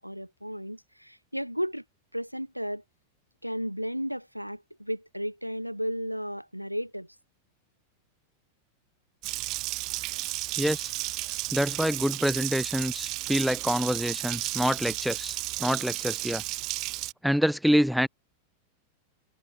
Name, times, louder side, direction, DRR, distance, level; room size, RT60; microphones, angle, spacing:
voice 1, 0.0-1.8 2.1-2.8 3.4-7.1, equal, 90° right, 2.4 m, -34 dB
Water tap faucet, 9.2-17.1, right 22 dB, 40° right, 1.5 m, -33 dB
voice 2, 10.6-10.9 11.5-16.4 17.2-18.1, equal, ahead, 0.9 m, -26 dB
figure-of-eight pair, 90°, 0 cm